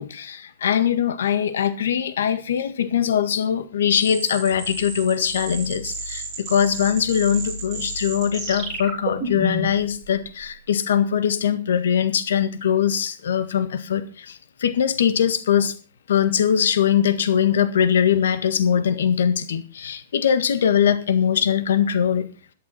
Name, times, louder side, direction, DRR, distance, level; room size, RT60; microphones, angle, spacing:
voice 1, 0.0-15.7 16.1-22.2, left 8 dB, 85° left, 10 dB, 1.7 m, -21 dB
sound 1, 4.0-9.8, right 2 dB, 10° right, 7.0 m, -31 dB
14.0 x 12.5 x 4.3 m, 0.37 s
supercardioid pair, 180°, 0 cm